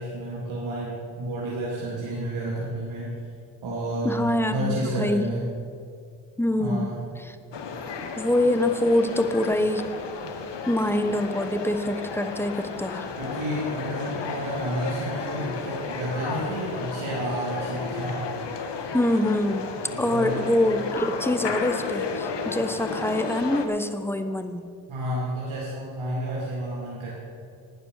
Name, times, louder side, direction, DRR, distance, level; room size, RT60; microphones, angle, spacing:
voice 1, 0.0-3.1 3.6-5.5 6.6-7.0 13.2-18.3 19.9-20.4 24.9-27.1, right 1 dB, 70° right, -6 dB, 2.9 m, -30 dB
voice 2, 4.0-5.2 6.4-7.0 7.3-7.4 8.2-9.9 10.7-13.1 18.9-24.7, left 1 dB, 5° left, 9 dB, 1.0 m, -25 dB
sound 1, 7.5-23.7, left 5 dB, 55° left, 1.4 m, -33 dB
11.5 x 9.3 x 6.5 m, 2.3 s
supercardioid pair, 55°, 49 cm